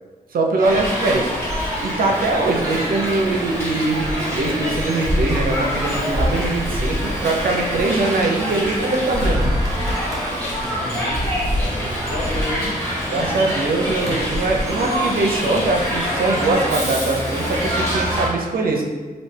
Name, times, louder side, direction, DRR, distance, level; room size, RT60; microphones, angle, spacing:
voice 1, 0.3-1.3 1.8-9.5 13.1-18.8, right 2 dB, 70° right, 1 dB, 0.5 m, -22 dB
Hiss, 0.6-18.3, equal, 15° left, 1.4 m, -25 dB
sound 1, 0.6-18.3, right 1 dB, 20° right, 0.8 m, -29 dB
voice 2, 10.7-12.7, left 2 dB, 60° left, -3 dB, 0.9 m, -31 dB
3.2 x 2.6 x 3.2 m, 1.4 s
wide cardioid pair, 105°, 15 cm